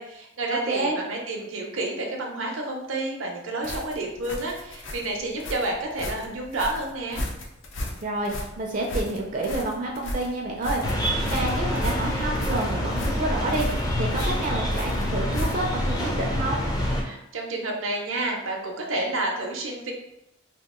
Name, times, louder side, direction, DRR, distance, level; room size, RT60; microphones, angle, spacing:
voice 1, 0.0-7.2 17.0-19.9, right 2 dB, 80° right, 1 dB, 0.6 m, -30 dB
voice 2, 0.7-1.0 8.0-16.6, right 2 dB, 40° right, 0 dB, 0.4 m, -29 dB
sound 1, 3.6-15.9, left 1 dB, 65° left, 0.6 m, -34 dB
sound 2, 10.8-17.0, left 1 dB, 20° left, 0.4 m, -26 dB
2.8 x 2.3 x 3.6 m, 0.87 s
head